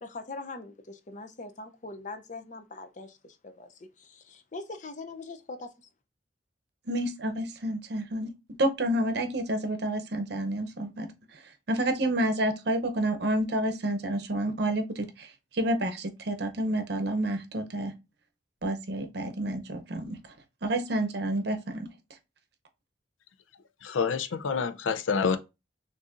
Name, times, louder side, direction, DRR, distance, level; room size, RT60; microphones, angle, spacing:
voice 1, 0.0-3.7 4.0-5.7, left 3 dB, 40° left, 0.5 m, -42 dB
voice 2, 6.9-8.3 8.6-11.4 11.7-17.9 18.6-20.2 20.6-21.9, right 1 dB, 55° right, 0.7 m, -29 dB
voice 3, 23.8-25.4, left 5 dB, 85° left, 0.5 m, -27 dB
6.4 x 2.6 x 2.5 m
head